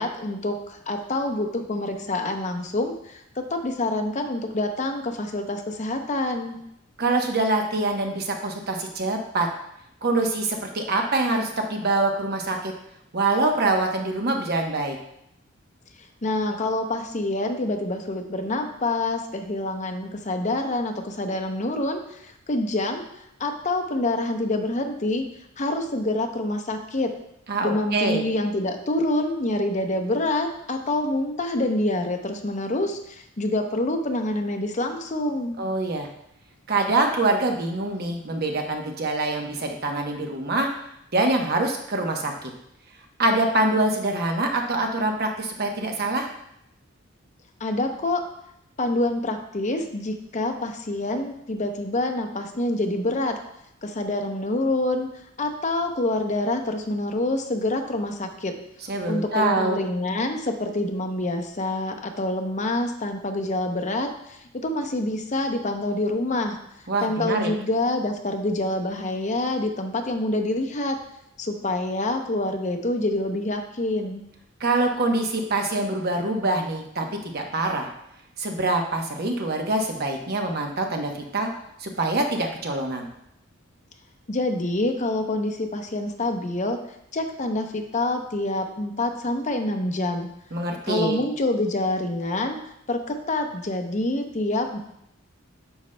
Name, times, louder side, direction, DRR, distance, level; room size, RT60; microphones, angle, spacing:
voice 1, 0.0-6.6 16.0-25.2 25.6-27.1 27.6-35.6 47.6-48.2 48.8-53.4 53.8-58.5 59.1-66.6 67.0-71.0 71.4-74.3 84.3-86.8 87.1-90.3 90.8-92.6 92.9-94.8, left 2 dB, 35° left, 5 dB, 0.7 m, -26 dB
voice 2, 7.0-9.5 10.0-12.7 13.1-15.0 27.5-28.2 35.6-36.1 36.7-40.7 41.1-42.5 43.2-46.3 58.9-59.8 66.9-67.5 74.6-77.9 78.4-81.5 81.8-83.1 90.5-91.2, right 2 dB, 50° right, 3 dB, 0.9 m, -25 dB
9.0 x 6.4 x 2.2 m, 0.77 s
head